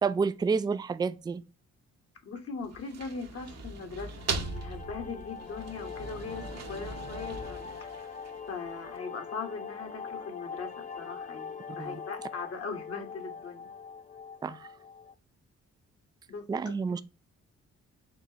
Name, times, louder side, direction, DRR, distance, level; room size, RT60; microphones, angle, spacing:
voice 1, 0.0-1.4 11.8-12.0 14.4-14.7 16.5-17.0, right 5 dB, 15° right, 0.3 m, -29 dB
voice 2, 2.2-7.7 8.5-13.7 16.3-16.7, left 4 dB, 50° left, 1.3 m, -40 dB
sound 1, 2.6-8.6, right 4 dB, 60° right, 0.9 m, -39 dB
sound 2, 4.1-15.1, left 6 dB, 25° left, 0.6 m, -43 dB
4.5 x 3.1 x 2.8 m
cardioid pair, 70°, 29 cm